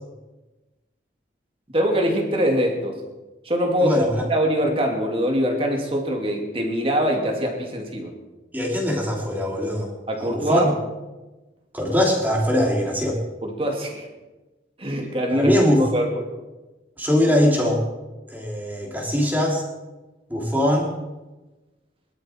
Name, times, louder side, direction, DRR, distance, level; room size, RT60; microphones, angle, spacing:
voice 1, 1.7-3.0 3.4-4.0 4.3-8.1 10.1-10.7 13.4-14.1 14.8-16.2, equal, 30° right, 2 dB, 2.7 m, -23 dB
voice 2, 3.8-4.2 8.5-9.9 10.2-10.7 11.7-13.2 15.3-15.9 17.0-17.8 18.3-19.6 20.3-20.9, left 1 dB, 10° right, -1 dB, 3.2 m, -21 dB
22.5 x 12.5 x 4.7 m, 1.1 s
head